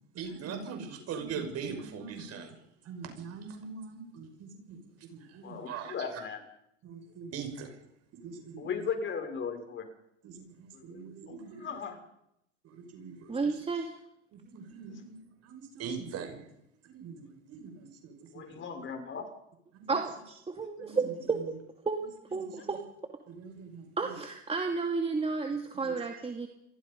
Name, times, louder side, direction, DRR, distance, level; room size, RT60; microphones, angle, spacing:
voice 1, 0.1-2.6 2.8-5.9 6.8-7.8 8.1-8.7 10.2-11.7 12.6-13.5 14.3-16.5 16.8-18.6 19.7-20.0 20.8-21.1 21.5-21.6 22.3-22.8 23.3-24.1 25.5-26.0, right 6 dB, 45° right, 5 dB, 6.1 m, -42 dB
voice 2, 5.4-6.4 8.6-9.9 10.7-11.0 11.3-12.0 14.9-15.0 18.3-19.3 20.9-21.0, left 6 dB, 35° left, 6 dB, 6.3 m, -37 dB
voice 3, 13.3-14.0 19.9-21.6 21.8-22.0 22.3-22.8 24.0-26.5, right 4 dB, 15° right, 3 dB, 2.8 m, -32 dB
29.0 x 23.0 x 5.5 m, 0.79 s
hypercardioid pair, 95°, 35 cm